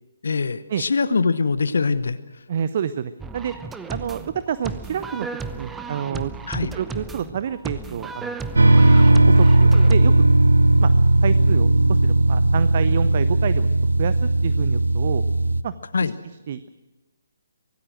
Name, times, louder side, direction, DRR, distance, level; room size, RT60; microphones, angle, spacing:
voice 1, 0.2-2.2 6.5-6.7 15.9-16.1, left 4 dB, 60° left, 13 dB, 0.9 m, -22 dB
voice 2, 2.5-3.5 3.9-6.3 6.7-8.8 9.2-10.1 10.8-10.9 11.2-13.7 14.0-15.2 15.6-15.7 16.0-16.1 16.5-16.7, right 8 dB, 40° right, 14 dB, 0.7 m, -28 dB
sound 1, 3.2-9.9, right 4 dB, 5° right, 0.9 m, -34 dB
sound 2, 8.6-15.6, right 2 dB, 70° right, 0.8 m, -16 dB
25.0 x 18.0 x 6.3 m, 1.1 s
figure-of-eight pair, 140°, 0 cm